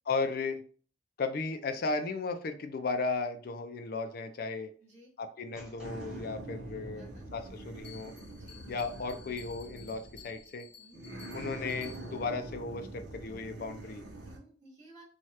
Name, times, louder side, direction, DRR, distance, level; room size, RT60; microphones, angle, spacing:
voice 1, 0.1-0.6 1.2-4.7 5.2-8.2 8.7-10.7 11.3-14.0, left 4 dB, 55° left, 7 dB, 0.4 m, -35 dB
voice 2, 4.8-5.1 6.9-7.2 8.4-8.6 10.8-11.0 14.2-15.0, right 1 dB, 40° right, -7 dB, 1.5 m, -56 dB
sound 1, 5.5-7.8, equal, 5° right, 1.3 m, -55 dB
sound 2, 5.8-10.5 10.9-14.4, right 1 dB, 80° right, 0.8 m, -44 dB
Bell, 7.8-12.4, left 7 dB, 30° left, 0.8 m, -54 dB
3.2 x 2.3 x 2.8 m, 0.42 s
head